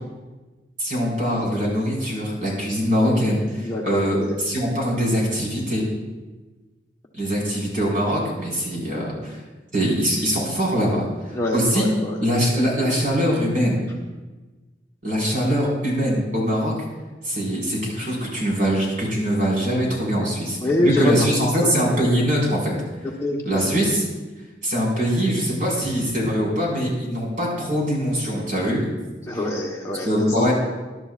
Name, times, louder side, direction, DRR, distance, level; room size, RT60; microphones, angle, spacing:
voice 1, 0.8-5.8 7.1-9.4 9.7-11.9 12.2-13.9 15.0-16.7 17.2-22.7 23.4-24.0 24.6-28.8 30.0-30.5, equal, 45° right, -3 dB, 4.8 m, -22 dB
voice 2, 3.6-4.3 11.3-12.2 20.6-21.3 21.6-21.7 23.0-23.8 29.2-30.1 30.4-30.5, left 1 dB, 15° left, -2 dB, 1.1 m, -25 dB
20.5 x 11.5 x 2.4 m, 1.2 s
head